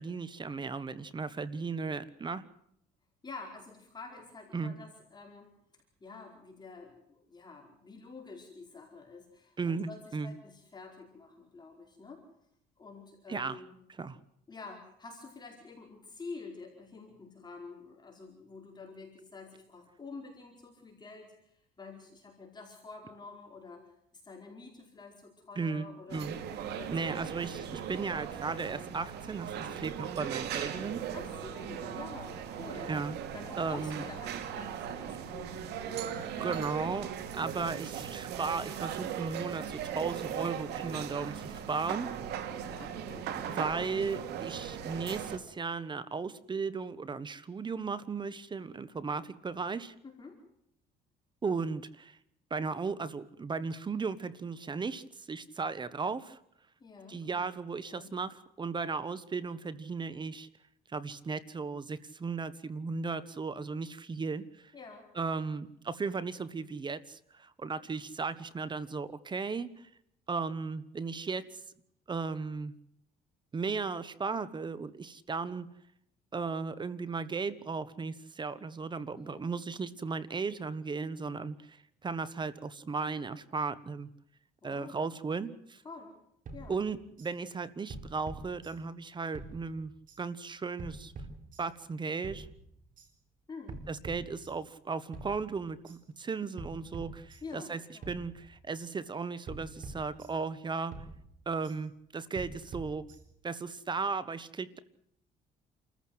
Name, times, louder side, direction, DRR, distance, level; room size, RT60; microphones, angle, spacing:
voice 1, 0.0-2.4 4.5-4.7 9.6-10.3 13.3-13.6 14.0-14.2 25.6-26.4 26.9-31.0 32.9-33.2 33.6-34.0 36.1-42.1 43.3-49.9 51.4-52.2 52.5-56.4 57.1-60.5 60.9-64.7 65.1-69.9 70.3-71.4 72.1-72.7 73.5-75.7 76.3-84.1 84.6-85.8 86.7-89.9 90.2-91.1 91.6-92.5 93.9-100.9 101.5-103.1 103.4-104.8, right 4 dB, 25° right, 16 dB, 1.2 m, -36 dB
voice 2, 3.2-5.5 6.0-12.2 12.8-13.8 14.5-23.9 24.2-26.3 26.7-27.0 31.1-32.9 33.3-36.6 42.5-43.3 50.0-50.4 56.8-57.6 57.9-58.1 64.7-65.1 79.1-79.4 84.6-85.0 85.8-86.1 86.5-86.8 93.5-93.8 97.4-98.1, left 4 dB, 25° left, 0 dB, 4.7 m, -48 dB
sound 1, 26.1-45.4, right 9 dB, 80° right, 2.2 m, -38 dB
sound 2, 86.5-87.3 87.9-89.1 89.3-90.2 90.8-91.9 92.2-93.1 93.7-94.8 95.1-96.0 96.6-97.7 98.0-98.9 99.5-100.6 100.9-101.8 102.4-103.5, right 2 dB, 50° right, 4.3 m, -46 dB
28.5 x 14.5 x 8.0 m, 0.72 s
cardioid pair, 110°, 17 cm